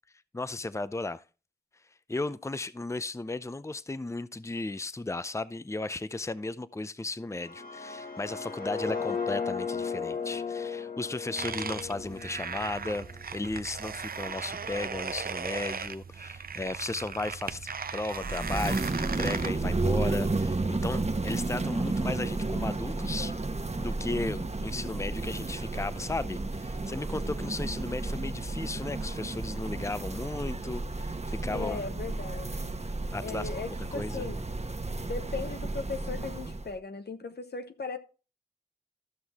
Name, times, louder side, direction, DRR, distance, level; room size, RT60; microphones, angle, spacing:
voice 1, 0.3-1.2 2.1-13.1 13.3-23.3 23.8-31.9 33.1-33.5 33.9-34.2, left 2 dB, 15° left, 0.5 m, -35 dB
sound 1, 7.3-13.3, left 5 dB, 65° left, 2.1 m, -36 dB
sound 2, 11.4-19.5, right 5 dB, 65° right, 0.5 m, -37 dB
sound 3, 18.2-36.7, right 2 dB, 40° right, 1.2 m, -32 dB
voice 2, 31.5-32.6 33.2-34.4 35.1-38.0, left 4 dB, 85° left, 1.0 m, -37 dB
13.0 x 6.2 x 3.6 m
wide cardioid pair, 50°, 17 cm